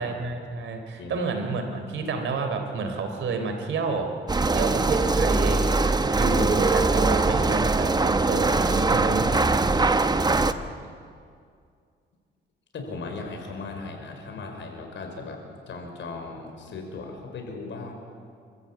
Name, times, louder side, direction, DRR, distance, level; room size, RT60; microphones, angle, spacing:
voice 1, 0.0-4.1 4.5-9.7, right 4 dB, 70° right, 5 dB, 3.6 m, -30 dB
sound 1, 4.3-10.5, right 3 dB, 20° right, 0.9 m, -22 dB
voice 2, 10.2-10.8 12.7-15.4 15.7-17.9, left 3 dB, 70° left, 3 dB, 5.2 m, -37 dB
28.0 x 14.5 x 8.7 m, 2.2 s
cardioid pair, 90°, 20 cm